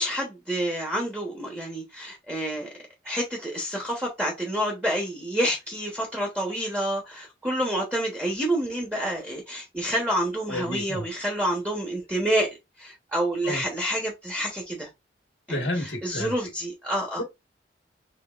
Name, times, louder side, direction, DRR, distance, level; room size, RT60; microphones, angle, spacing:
voice 1, 0.0-2.7 3.0-12.5 12.8-14.9 15.5-17.2, right 1 dB, 10° right, 1.1 m, -28 dB
voice 2, 10.5-11.0 13.4-13.6 15.5-16.3 17.2-17.3, left 1 dB, 90° left, 1.4 m, -30 dB
5.1 x 3.4 x 2.5 m
head